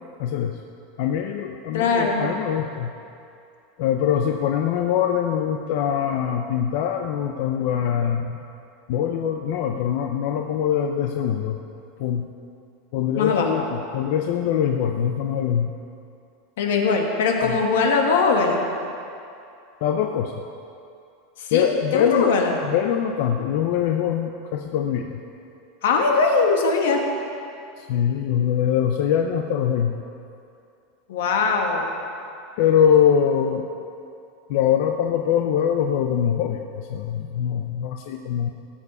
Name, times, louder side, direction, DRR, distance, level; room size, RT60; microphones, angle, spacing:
voice 1, 0.2-0.6 1.0-2.9 3.8-8.4 8.9-11.6 12.0-12.3 12.9-15.7 17.4-17.6 19.8-20.3 21.5-22.3 22.6-25.2 27.8-30.0 32.6-33.7 34.5-38.5, left 8 dB, 50° left, 4 dB, 0.6 m, -23 dB
voice 2, 1.7-2.3 13.2-13.6 16.6-18.6 21.4-22.6 25.8-27.0 31.1-31.9, left 4 dB, 80° left, 2 dB, 1.9 m, -21 dB
18.0 x 7.3 x 5.6 m, 2.6 s
supercardioid pair, 175°, 0 cm